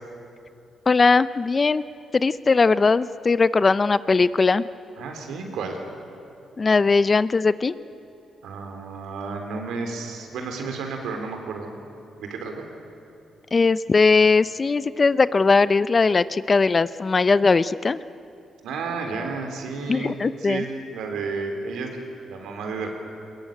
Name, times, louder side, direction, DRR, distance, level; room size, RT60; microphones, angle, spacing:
voice 1, 0.9-1.8 2.1-4.7 6.6-7.7 13.5-18.0 19.9-20.6, left 4 dB, 35° left, 16 dB, 0.6 m, -19 dB
voice 2, 5.0-5.8 8.4-11.7 12.2-12.6 18.6-21.9 22.3-22.9, right 4 dB, 80° right, 4 dB, 3.5 m, -32 dB
21.5 x 20.5 x 9.2 m, 2.7 s
cardioid pair, 70°, 0 cm